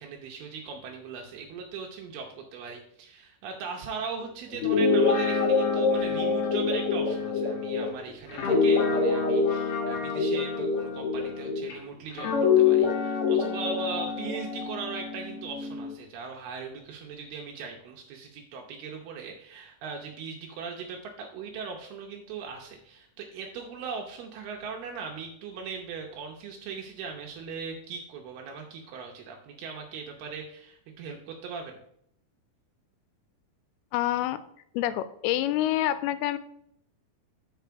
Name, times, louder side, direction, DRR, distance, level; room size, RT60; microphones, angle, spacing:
voice 1, 0.0-12.3 12.6-31.8, right 5 dB, 80° right, 1 dB, 2.7 m, -39 dB
Guitar, 4.5-11.7 12.2-15.9, left 5 dB, 65° left, 1.3 m, -25 dB
voice 2, 33.9-34.4 34.7-36.4, left 13 dB, 85° left, 13 dB, 2.4 m, -27 dB
8.0 x 5.0 x 4.6 m, 0.69 s
omnidirectional pair, 4.6 m